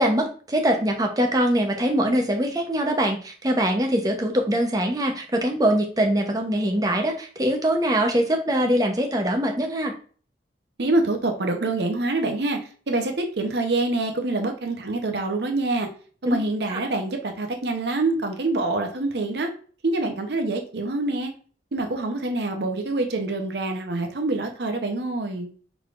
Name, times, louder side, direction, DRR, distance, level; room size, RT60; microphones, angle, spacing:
voice 1, 0.0-9.9 16.3-16.4 16.7-16.8, right 1 dB, 20° right, 3 dB, 0.7 m, -23 dB
voice 2, 10.8-12.6 12.9-15.9 16.2-19.5 19.8-21.3 21.7-25.5, right 2 dB, 65° right, 4 dB, 0.8 m, -25 dB
4.7 x 4.0 x 2.5 m, 0.42 s
head